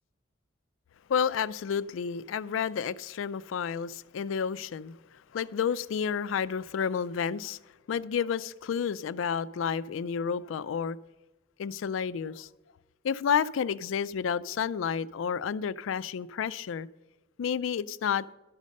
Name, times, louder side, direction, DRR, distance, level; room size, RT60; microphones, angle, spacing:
voice 1, 1.1-5.0 5.3-7.6 7.9-11.0 11.6-12.5 13.0-16.9 17.4-18.3, left 7 dB, 90° left, 18 dB, 0.4 m, -30 dB
11.5 x 6.4 x 5.3 m, 1.1 s
head